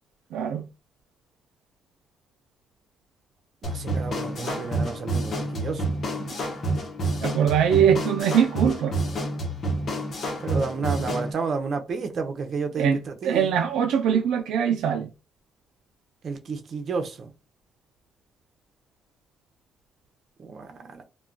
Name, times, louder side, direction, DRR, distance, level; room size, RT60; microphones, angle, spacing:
voice 1, 0.3-0.7 6.3-6.4 7.2-8.9 12.8-13.0 13.2-15.1, right 8 dB, 85° right, 0.3 m, -22 dB
sound 1, 3.6-11.3, right 1 dB, 50° left, 0.8 m, -29 dB
voice 2, 3.6-5.9 10.4-13.5 16.2-17.3 20.4-21.0, right 4 dB, 55° right, 0.7 m, -31 dB
2.3 x 2.2 x 3.7 m
cardioid pair, 90°, 0 cm